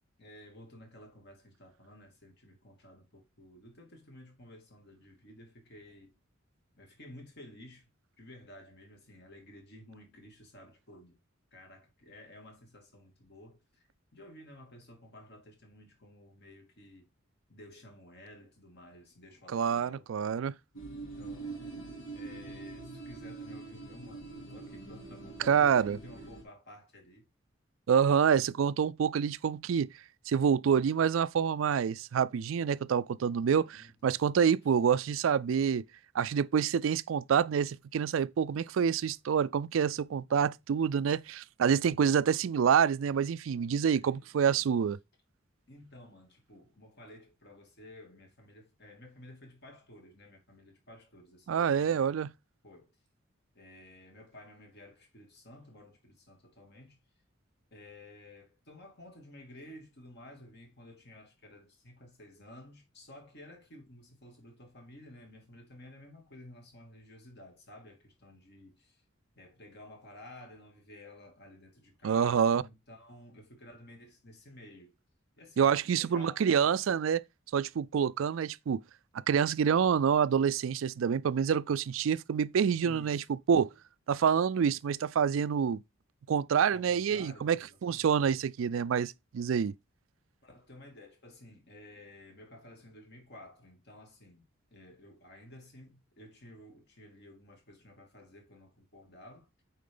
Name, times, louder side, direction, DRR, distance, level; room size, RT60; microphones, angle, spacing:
voice 1, 0.2-6.1 6.7-7.9 8.2-11.2 11.5-17.1 17.5-20.1 20.9-27.3 33.6-33.9 44.0-44.7 45.7-52.2 52.6-52.9 53.5-57.0 57.7-69.0 69.4-75.0 75.4-76.5 82.8-83.3 86.7-88.1 90.4-94.5 94.7-99.5, left 1 dB, 55° left, 2.7 m, -53 dB
voice 2, 19.5-20.5 25.5-26.0 27.9-29.9 30.3-35.8 36.1-45.0 51.5-52.3 72.0-72.6 75.6-77.2 77.5-78.8 79.3-83.7 84.1-85.8 86.3-89.7, right 7 dB, 75° right, 0.4 m, -27 dB
sound 1, 20.7-26.4, right 3 dB, 85° left, 2.8 m, -44 dB
8.4 x 4.7 x 3.8 m
head